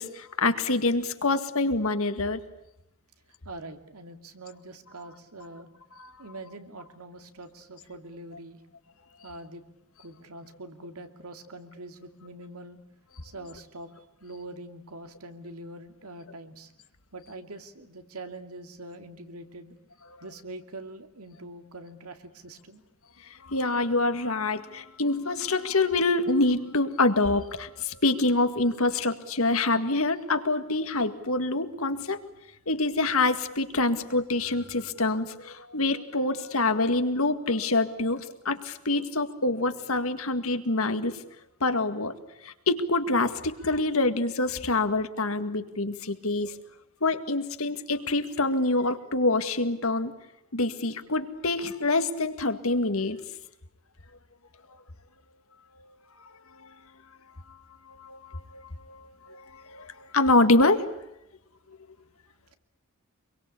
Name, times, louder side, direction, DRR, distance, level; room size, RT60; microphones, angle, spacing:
voice 1, 0.0-2.4 6.0-6.1 23.4-32.2 32.7-41.2 41.6-42.2 42.4-46.6 47.0-50.1 50.5-53.2 56.6-56.7 57.9-60.9, left 2 dB, 70° left, 9 dB, 2.0 m, -26 dB
voice 2, 3.4-5.7 6.2-8.6 9.2-9.6 10.0-12.8 13.2-13.9 14.2-16.7 17.1-19.7 20.2-22.8, right 2 dB, 85° right, 7 dB, 2.5 m, -43 dB
26.0 x 23.0 x 8.5 m, 0.86 s
head